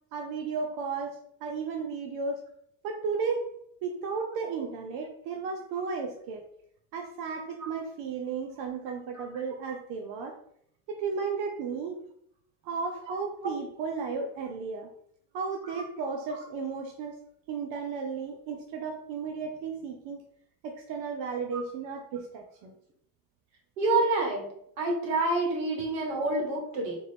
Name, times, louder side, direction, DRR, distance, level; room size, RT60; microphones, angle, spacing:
voice 1, 0.1-2.4 2.8-3.5 3.8-6.4 6.9-10.3 10.9-12.0 12.6-14.9 15.3-17.2 17.5-20.2 20.6-22.7, right 5 dB, 65° right, 3 dB, 0.7 m, -34 dB
voice 2, 23.8-24.5 24.8-27.0, right 2 dB, 85° right, 2 dB, 1.1 m, -28 dB
3.9 x 2.6 x 3.2 m, 0.70 s
hypercardioid pair, 60°, 49 cm